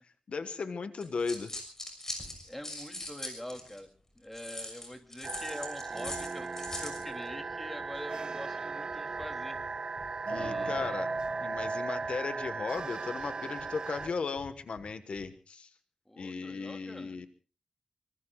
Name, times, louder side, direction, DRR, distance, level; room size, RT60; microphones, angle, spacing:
voice 1, 0.3-1.5 10.3-11.1 11.4-15.7 16.2-17.3, left 4 dB, 65° left, 10 dB, 1.3 m, -36 dB
sound 1, 1.0-3.8 4.3-7.0, left 1 dB, 25° left, 6.2 m, -41 dB
voice 2, 2.5-3.9 4.1-6.5 6.7-9.6 10.4-11.0 16.1-17.2, left 1 dB, 10° left, 5 dB, 2.7 m, -44 dB
sound 2, 5.2-14.1, right 4 dB, 45° right, 1.2 m, -36 dB
Breathing, 9.1-9.3 9.5-9.7 10.0-10.1 10.4-11.7 12.0-12.9 13.2-14.1 14.4-15.3, left 4 dB, 80° left, 3.7 m, -53 dB
25.0 x 24.5 x 2.3 m, 0.38 s
wide cardioid pair, 145°, 2 cm